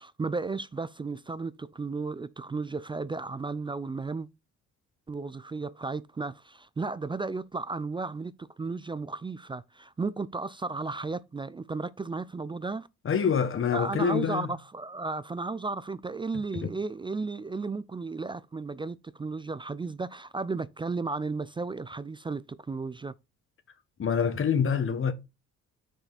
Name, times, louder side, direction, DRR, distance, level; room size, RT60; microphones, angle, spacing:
voice 1, 0.0-4.3 5.1-12.9 13.7-23.1, right 3 dB, 15° right, 0.3 m, -34 dB
voice 2, 13.0-14.5 24.0-25.1, left 7 dB, 45° left, 1.4 m, -26 dB
6.4 x 4.9 x 4.1 m
cardioid pair, 90°, 30 cm